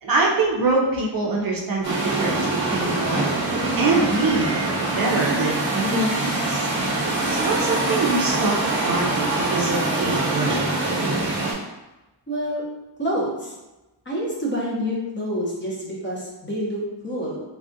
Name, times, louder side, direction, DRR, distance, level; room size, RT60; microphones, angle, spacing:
voice 1, 0.0-3.3 3.8-4.5 5.0-6.7 7.3-8.6 8.8-10.6, right 3 dB, 50° right, -2 dB, 0.5 m, -24 dB
sound 1, 1.8-11.5, right 2 dB, 25° right, 0.9 m, -24 dB
voice 2, 12.3-12.6 13.0-13.5 14.1-17.4, equal, 25° left, -5 dB, 0.8 m, -27 dB
3.4 x 2.3 x 2.6 m, 1.0 s
wide cardioid pair, 140°, 45 cm